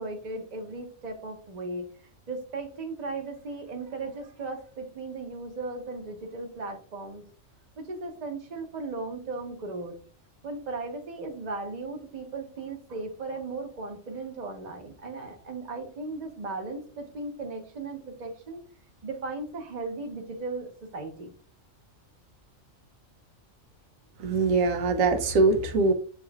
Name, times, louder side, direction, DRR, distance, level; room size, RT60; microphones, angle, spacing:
voice 1, 0.0-1.9 2.3-7.2 7.8-9.9 10.4-18.6 19.0-21.3, right 3 dB, 35° right, 3 dB, 1.0 m, -36 dB
voice 2, 24.2-25.9, right 3 dB, 80° right, 6 dB, 1.1 m, -22 dB
7.1 x 3.0 x 2.3 m, 0.41 s
omnidirectional pair, 1.4 m